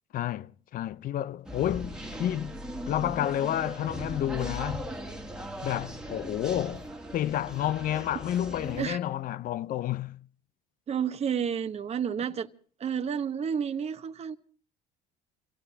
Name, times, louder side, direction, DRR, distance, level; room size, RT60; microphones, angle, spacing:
voice 1, 0.1-2.6 2.9-4.9 5.6-6.9 7.1-10.3, left 12 dB, 50° left, 0.7 m, -30 dB
sound 1, 1.4-8.9, equal, 5° right, 2.3 m, -39 dB
voice 2, 10.9-12.5 12.8-14.4, right 7 dB, 35° right, 1.0 m, -30 dB
29.0 x 17.0 x 2.8 m
supercardioid pair, 80°, 18 cm